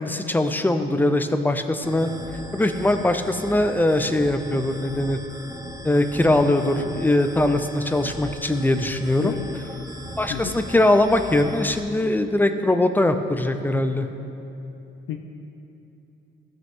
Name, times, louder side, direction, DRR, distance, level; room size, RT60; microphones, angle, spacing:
voice 1, 0.0-2.1 2.5-5.2 5.8-9.4 10.2-14.1, left 1 dB, 10° left, 8 dB, 0.6 m, -21 dB
sound 1, 1.8-11.8, right 1 dB, 15° right, 0.9 m, -38 dB
voice 2, 6.5-6.9 9.2-9.4 10.3-10.6 15.1-15.2, left 10 dB, 85° left, 4 dB, 0.6 m, -31 dB
16.5 x 6.3 x 3.7 m, 3.0 s
cardioid pair, 90°, 20 cm